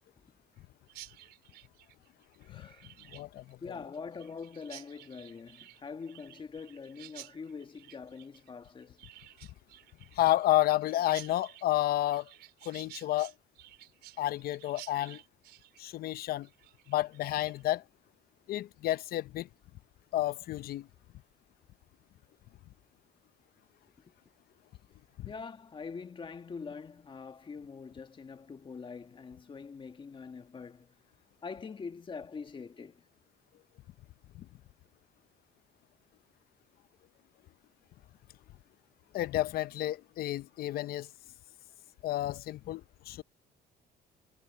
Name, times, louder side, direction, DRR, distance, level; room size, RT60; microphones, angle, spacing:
Chirp tweet, 0.9-17.8, right 15 dB, 80° right, 4.2 m, -53 dB
voice 1, 2.5-2.9 3.6-9.0 25.2-30.9 31.4-33.0, left 5 dB, 30° left, 1.7 m, -44 dB
voice 2, 3.1-3.6 10.2-12.3 12.7-13.3 14.2-15.2 15.8-16.5 16.9-17.8 18.5-19.5 20.1-20.9 25.2-25.3 34.3-34.5 39.1-41.1 42.0-43.2, left 15 dB, 65° left, 0.6 m, -30 dB
cardioid pair, 110°, 17 cm